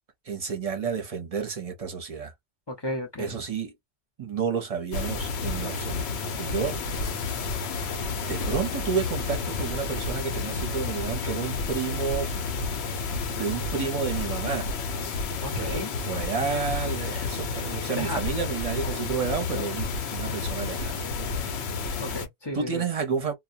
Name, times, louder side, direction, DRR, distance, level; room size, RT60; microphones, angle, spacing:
voice 1, 0.3-2.3 3.2-3.7 4.2-6.8 8.3-12.3 13.3-14.7 15.5-15.8 16.1-20.9 22.5-23.3, right 6 dB, 40° right, 0.7 m, -30 dB
voice 2, 2.7-3.4 15.4-15.9 17.9-18.2 22.0-22.8, left 1 dB, 25° left, 0.7 m, -33 dB
sound 1, 4.9-22.3, left 4 dB, 75° left, 0.9 m, -31 dB
2.2 x 2.2 x 2.6 m
omnidirectional pair, 1.1 m